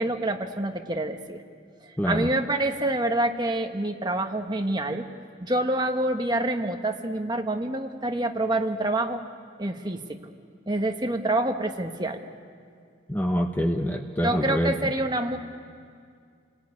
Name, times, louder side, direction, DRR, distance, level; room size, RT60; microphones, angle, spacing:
voice 1, 0.0-1.4 2.0-5.1 5.4-9.2 9.6-10.2 10.7-12.2 14.2-15.4, right 1 dB, 20° right, 4 dB, 1.2 m, -27 dB
voice 2, 2.0-2.3 13.1-14.9, equal, 10° left, 4 dB, 0.9 m, -26 dB
28.5 x 20.0 x 9.5 m, 2.3 s
head